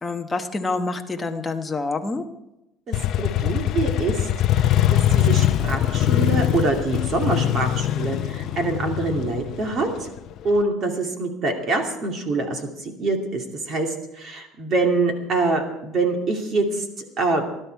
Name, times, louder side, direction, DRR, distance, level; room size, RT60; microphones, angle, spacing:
voice 1, 0.0-2.2, left 3 dB, 10° left, 4 dB, 1.0 m, -27 dB
Motorcycle, 2.9-10.6, left 12 dB, 40° left, 0.7 m, -22 dB
voice 2, 2.9-4.2 4.5-10.1 10.4-17.4, right 3 dB, 30° right, 3 dB, 2.5 m, -25 dB
20.0 x 12.5 x 4.6 m, 0.89 s
cardioid pair, 175°, 0 cm